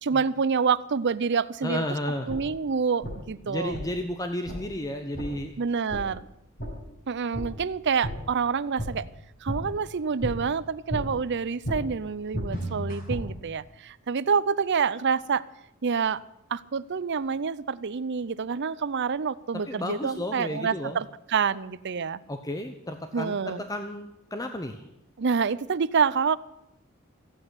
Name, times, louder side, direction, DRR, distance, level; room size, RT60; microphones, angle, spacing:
voice 1, 0.0-1.8 2.3-3.7 5.6-6.2 7.1-9.1 9.4-15.4 15.8-16.2 16.5-22.2 23.1-23.6 25.2-26.4, right 6 dB, 55° right, 17 dB, 0.6 m, -27 dB
voice 2, 1.6-2.3 3.5-5.6 19.7-21.0 22.3-24.8, left 1 dB, 15° left, 6 dB, 0.9 m, -33 dB
sound 1, 2.3-2.4 3.0-3.1 3.7-3.8 4.5-4.6 5.1-5.3 5.9-6.0 6.6-6.7 7.3-7.5 8.0-8.1 8.8-8.9 9.5-9.6 10.2-10.3 10.9-11.0 11.6-11.8 12.3-13.2, equal, 45° left, 5.7 m, -31 dB
15.5 x 8.8 x 9.6 m, 0.83 s
head